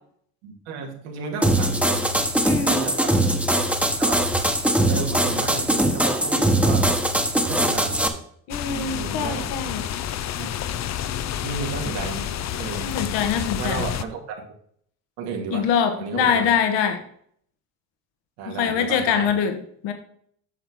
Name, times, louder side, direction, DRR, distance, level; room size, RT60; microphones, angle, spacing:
voice 1, 0.4-2.1 2.7-3.2 4.0-4.2 4.9-6.9 7.3-8.0 8.6-9.5 10.4-10.5 11.4-12.3 12.6-12.9 13.6-14.4 15.2-15.7 16.0-16.5 18.4-19.3, right 5 dB, 80° right, 1 dB, 2.3 m, -33 dB
sound 1, 1.4-8.1, right 1 dB, 5° right, 1.2 m, -21 dB
voice 2, 2.4-2.8 8.5-9.9 12.8-13.9 15.5-17.0 18.5-19.9, left 7 dB, 65° left, 6 dB, 1.5 m, -24 dB
sound 2, 8.5-14.0, left 10 dB, 35° left, 0.6 m, -29 dB
9.0 x 6.1 x 3.6 m, 0.63 s
supercardioid pair, 80°, 46 cm